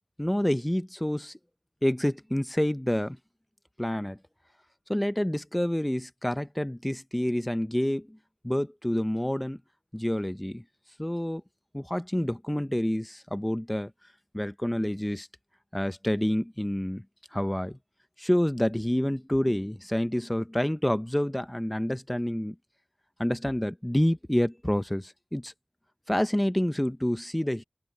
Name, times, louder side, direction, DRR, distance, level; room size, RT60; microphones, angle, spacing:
voice 1, 0.2-1.4 1.8-3.2 3.8-4.2 4.9-8.2 8.4-9.6 9.9-10.6 11.0-11.4 11.7-13.9 14.3-15.3 15.7-17.0 17.3-17.8 18.2-22.5 23.2-25.5 26.1-27.6, left 1 dB, 10° left, 0.9 m, -28 dB
wide cardioid pair, 65°, 0 cm